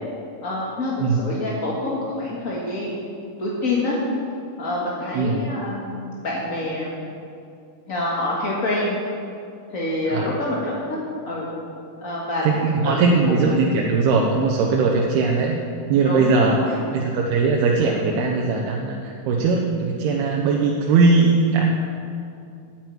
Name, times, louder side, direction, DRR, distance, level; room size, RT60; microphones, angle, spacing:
voice 1, 0.4-3.1 3.4-4.0 4.6-6.9 7.9-8.9 9.7-11.0 11.3-11.5 12.0-12.4 12.8-13.2 13.4-13.6 16.0-16.8, left 2 dB, 40° left, -5 dB, 1.1 m, -26 dB
voice 2, 12.4-15.6 15.9-21.7, right 4 dB, 90° right, -1 dB, 3.0 m, -20 dB
10.5 x 9.3 x 9.2 m, 2.5 s
omnidirectional pair, 4.4 m